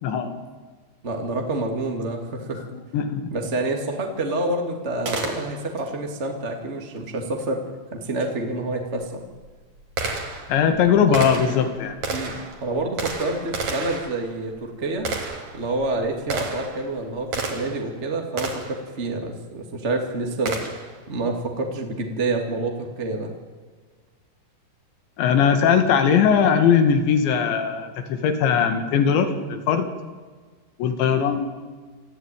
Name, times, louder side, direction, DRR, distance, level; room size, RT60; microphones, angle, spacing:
voice 1, 0.0-0.3 2.7-3.3 10.5-12.0 25.2-29.9 30.8-31.5, left 7 dB, 85° left, 7 dB, 4.4 m, -20 dB
voice 2, 1.0-2.6 3.3-7.6 7.9-9.2 12.1-15.1 15.5-20.5 21.1-23.4, right 2 dB, 25° right, 3 dB, 1.8 m, -28 dB
Gunshot gunfire, 5.1-5.9 8.2-8.3 9.0-17.9 18.4-18.8 20.5-21.0, right 3 dB, 45° right, 3.9 m, -31 dB
27.5 x 14.5 x 9.3 m, 1.4 s
omnidirectional pair, 5.0 m